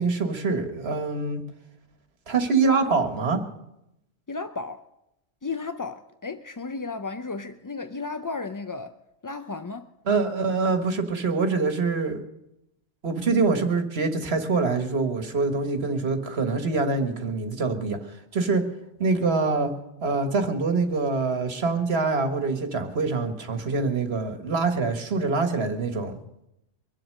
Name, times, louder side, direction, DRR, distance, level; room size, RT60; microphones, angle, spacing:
voice 1, 0.0-1.4 2.3-3.4 10.1-12.2 13.0-18.6 19.0-19.7 20.0-26.2, right 4 dB, 65° right, 1.8 m, -25 dB
voice 2, 4.3-4.8 5.4-9.0 9.2-9.9, left 4 dB, 30° left, 0.3 m, -34 dB
23.5 x 7.9 x 6.5 m
omnidirectional pair, 1.1 m